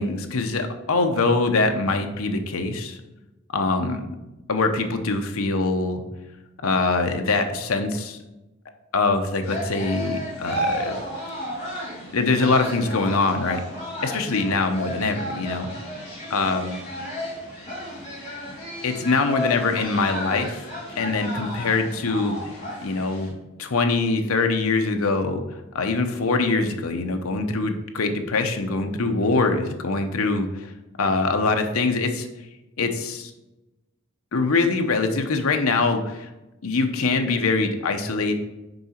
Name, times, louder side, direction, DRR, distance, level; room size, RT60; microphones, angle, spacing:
voice 1, 0.0-3.0 3.5-4.1 4.5-6.0 6.6-8.2 8.9-11.0 12.1-13.6 14.0-15.7 16.3-16.8 18.8-22.3 22.8-25.4 25.7-30.7 31.0-32.3 32.8-33.3 34.3-36.3 36.6-38.3, left 3 dB, 80° left, 6 dB, 0.8 m, -23 dB
sound 1, 9.4-23.3, equal, 30° left, 2.6 m, -33 dB
6.6 x 4.8 x 4.4 m, 1.0 s
head